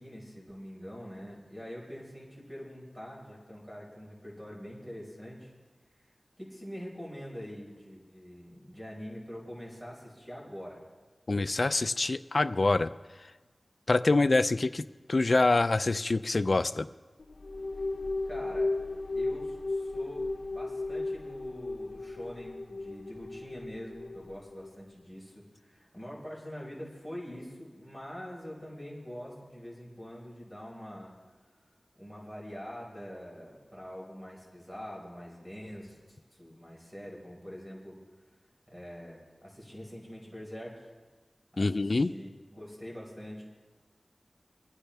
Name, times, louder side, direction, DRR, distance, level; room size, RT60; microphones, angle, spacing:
voice 1, 0.0-5.5 6.4-10.8 18.3-18.7 19.1-31.1 31.9-38.0 38.7-40.9 41.5-43.4, equal, 15° right, -4 dB, 5.2 m, -44 dB
voice 2, 11.3-12.9 13.9-14.8 15.1-16.9 41.6-42.1, left 3 dB, 60° left, 13 dB, 0.4 m, -25 dB
sound 1, 17.2-24.8, left 2 dB, 80° left, 0.8 m, -35 dB
24.5 x 9.9 x 3.5 m, 1.3 s
wide cardioid pair, 45°, 0 cm